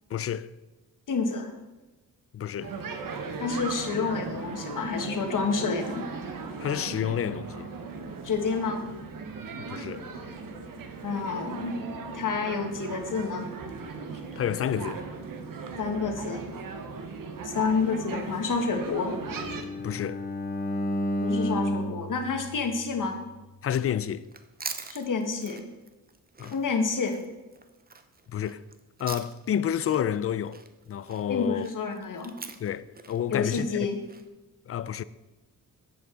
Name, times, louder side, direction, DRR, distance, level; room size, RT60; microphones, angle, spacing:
voice 1, 0.1-0.5 2.3-2.7 6.6-7.7 9.7-10.1 14.4-15.0 19.8-20.2 23.6-24.2 26.4-26.5 28.3-28.6 29.0-30.6 30.9-31.7 32.6-33.9 34.7-35.0, left 9 dB, 40° left, 0.4 m, -29 dB
voice 2, 1.1-1.5 3.4-6.1 8.2-8.8 11.0-11.7 12.1-13.5 15.8-16.5 17.4-19.2 21.2-23.2 24.9-25.6 26.5-27.2 31.3-32.3 33.3-34.0, left 4 dB, 60° left, 1.4 m, -29 dB
sound 1, 2.6-19.6, right 4 dB, 65° right, 1.2 m, -38 dB
Bowed string instrument, 19.1-23.3, equal, 25° left, 0.8 m, -32 dB
Chewing mastication, 24.2-29.6 29.8-34.2, right 4 dB, 25° right, 0.7 m, -43 dB
9.5 x 7.9 x 3.8 m
cardioid pair, 85°, 35 cm